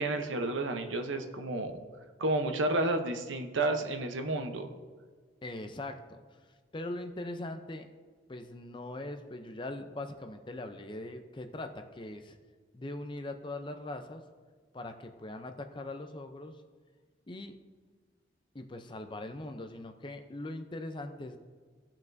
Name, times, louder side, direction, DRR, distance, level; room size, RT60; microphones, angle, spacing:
voice 1, 0.0-1.7 2.2-4.7, right 2 dB, 80° right, 6 dB, 0.8 m, -31 dB
voice 2, 5.4-6.2 6.7-7.9 8.3-12.4 12.7-14.2 14.7-16.6 17.3-17.6 18.5-21.4, left 2 dB, 25° left, 7 dB, 0.5 m, -41 dB
17.0 x 5.8 x 2.6 m, 1.5 s
head